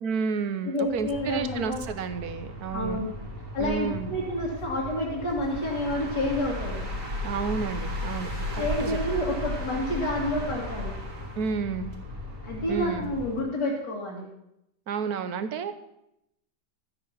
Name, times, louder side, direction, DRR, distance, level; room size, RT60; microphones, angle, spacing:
voice 1, 0.0-3.0 3.6-4.2 7.2-9.0 11.4-11.9 12.7-13.1 14.9-15.7, right 5 dB, 65° right, 10 dB, 1.4 m, -31 dB
voice 2, 0.7-1.8 2.7-3.1 3.5-6.8 8.6-10.9 12.4-14.3, left 1 dB, 75° left, -5 dB, 2.9 m, -29 dB
sound 1, 0.8-13.5, left 1 dB, 50° right, 3.1 m, -35 dB
13.0 x 9.6 x 5.8 m, 0.80 s
omnidirectional pair, 1.8 m